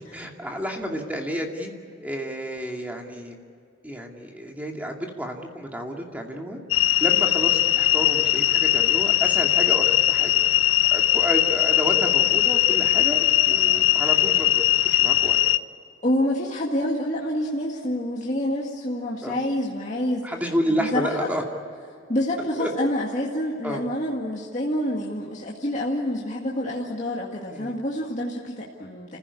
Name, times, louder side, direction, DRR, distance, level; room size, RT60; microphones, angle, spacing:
voice 1, 0.1-1.7 2.0-3.4 3.8-6.6 7.0-10.3 10.9-14.6 14.9-15.4 19.2-19.4 20.2-21.4 22.6-22.7 23.6-23.8 27.5-27.7, equal, 10° right, 1 dB, 2.4 m, -30 dB
sound 1, 6.7-15.6, left 14 dB, 85° left, 0.6 m, -20 dB
voice 2, 16.0-20.3 20.8-21.3 22.1-29.2, left 1 dB, 35° left, -3 dB, 2.0 m, -27 dB
29.5 x 15.5 x 8.4 m, 2.5 s
head